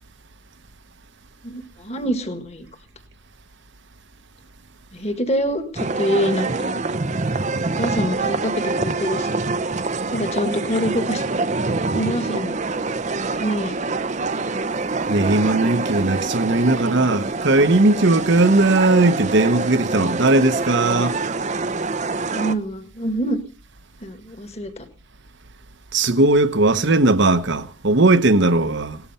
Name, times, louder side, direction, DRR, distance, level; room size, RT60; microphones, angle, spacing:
voice 1, 1.4-2.7 4.9-6.8 7.8-9.4 10.1-11.2 11.9-12.6 13.3-13.9 22.3-23.4 24.0-24.9, equal, 30° left, 1.7 m, -25 dB
sound 1, 5.8-22.5, right 3 dB, 35° right, 0.7 m, -25 dB
voice 2, 15.1-21.2 25.9-29.0, right 2 dB, 55° right, 1.0 m, -18 dB
18.5 x 13.0 x 5.6 m
head